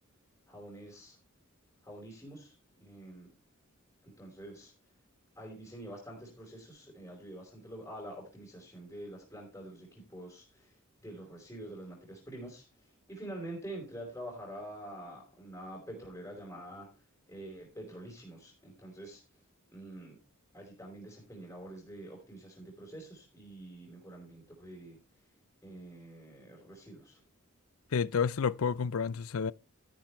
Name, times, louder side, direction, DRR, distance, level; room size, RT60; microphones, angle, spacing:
voice 1, 0.5-1.2 1.8-2.5 2.8-3.3 4.0-4.7 5.4-10.7 11.0-12.6 13.1-16.9 17.3-19.2 19.7-20.2 20.5-25.0 25.6-27.2, right 1 dB, 10° left, 4.6 m, -46 dB
voice 2, 27.9-29.5, left 6 dB, 75° left, 0.5 m, -30 dB
13.5 x 10.5 x 3.4 m
head